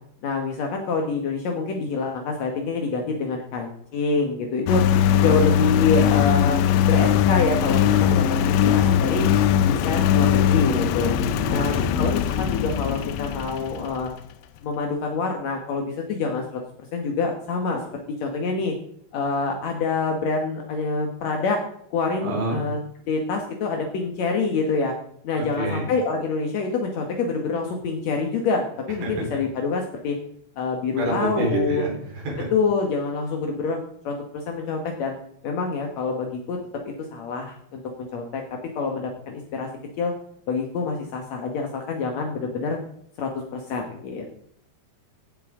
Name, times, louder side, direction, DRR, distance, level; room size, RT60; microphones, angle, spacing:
voice 1, 0.2-4.8 5.2-9.3 9.6-11.2 11.5-14.1 14.6-16.6 16.9-17.8 18.2-18.7 19.1-21.6 21.9-22.8 23.1-24.9 25.2-30.2 30.6-31.9 32.5-33.8 34.0-35.2 35.4-36.6 37.1-38.4 38.8-39.7 40.0-40.1 40.5-42.8 43.2-44.3, left 4 dB, 65° left, 2 dB, 1.8 m, -26 dB
Engine, 4.7-14.1, left 9 dB, 85° left, 3.1 m, -20 dB
voice 2, 11.5-12.0 22.2-22.6 25.4-25.9 29.0-29.3 31.0-32.5, right 2 dB, 90° right, -3 dB, 6.4 m, -28 dB
16.5 x 9.0 x 3.8 m, 0.68 s
omnidirectional pair, 5.1 m